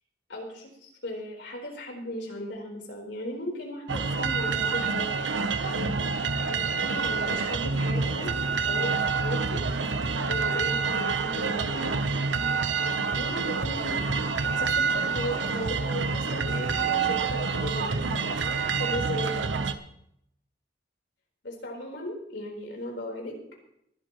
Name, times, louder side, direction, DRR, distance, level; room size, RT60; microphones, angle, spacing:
voice 1, 0.3-5.1 5.7-6.1 6.4-8.3 8.7-10.0 10.3-11.9 13.1-14.1 14.4-17.9 18.4-19.5 21.4-23.4, equal, 70° left, 0 dB, 4.4 m, -36 dB
sound 1, 3.9-19.7, right 4 dB, 80° right, 0.9 m, -27 dB
20.5 x 12.5 x 3.1 m, 0.74 s
head